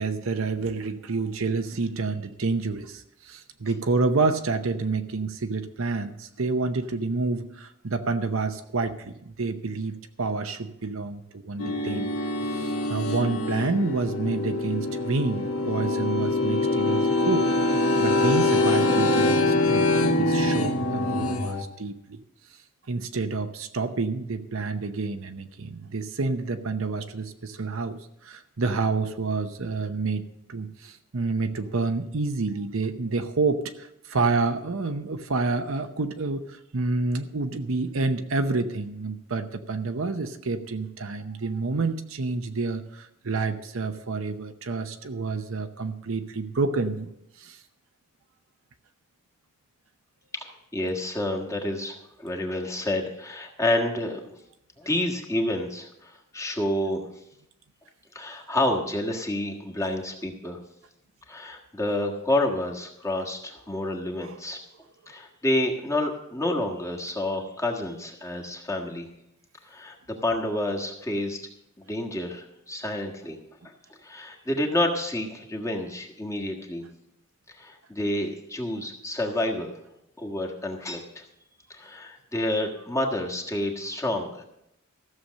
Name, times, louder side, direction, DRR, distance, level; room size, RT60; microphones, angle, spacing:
voice 1, 0.0-12.1 12.4-22.2 22.9-47.1 47.4-47.6 64.2-64.3, right 3 dB, 65° right, 8 dB, 0.8 m, -29 dB
sound 1, 11.6-21.6, left 2 dB, 85° left, 1.6 m, -24 dB
voice 2, 50.3-54.4 54.8-57.0 58.1-60.6 61.3-64.6 65.1-69.1 69.6-71.4 71.8-73.4 74.0-76.8 77.6-79.7 80.2-81.2 81.7-84.4, left 1 dB, 15° left, 0 dB, 1.5 m, -29 dB
14.5 x 7.0 x 6.3 m, 0.81 s
head